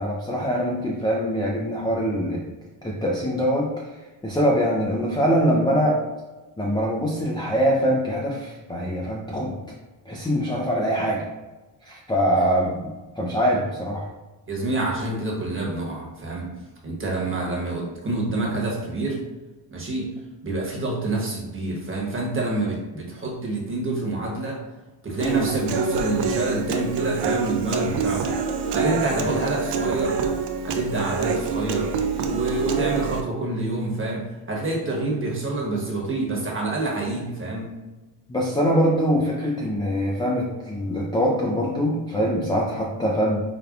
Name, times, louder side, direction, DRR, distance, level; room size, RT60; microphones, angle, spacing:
voice 1, 0.0-2.4 2.8-3.9 4.2-6.0 6.6-9.5 10.1-11.2 11.8-14.1 25.3-25.5 29.1-29.3 38.3-43.4, equal, 10° left, -3 dB, 0.4 m, -23 dB
voice 2, 14.5-16.5 16.8-19.2 19.7-20.1 20.4-24.6 25.0-28.4 28.7-30.2 30.6-31.9 32.3-37.7, right 2 dB, 25° right, -2 dB, 1.1 m, -27 dB
Human voice / Acoustic guitar, 25.2-33.2, right 5 dB, 60° right, 0.5 m, -26 dB
4.9 x 2.3 x 2.4 m, 1.2 s
cardioid pair, 90°, 47 cm